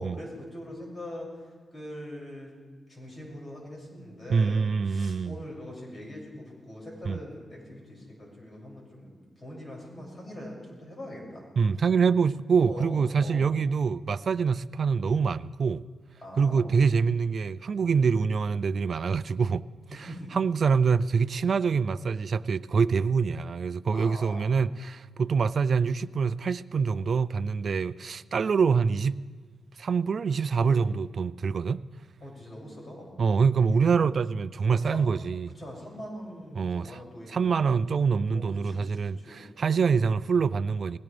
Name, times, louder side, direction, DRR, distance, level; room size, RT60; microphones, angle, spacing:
voice 1, 0.0-1.4 1.7-2.5 2.9-9.1 9.4-11.4 12.7-13.5 16.2-16.7 17.9-18.1 19.9-20.3 23.9-24.5 30.6-30.8 32.2-33.2 34.7-35.0 35.5-37.8 38.3-39.5, left 1 dB, 40° left, 6.7 m, -42 dB
voice 2, 4.3-5.4 7.0-7.2 11.6-15.8 16.4-19.6 19.9-20.1 20.3-29.2 29.8-31.8 33.2-35.5 36.5-37.0 37.3-41.0, right 5 dB, 55° right, 0.4 m, -25 dB
21.0 x 17.5 x 3.4 m
cardioid pair, 80°, 0 cm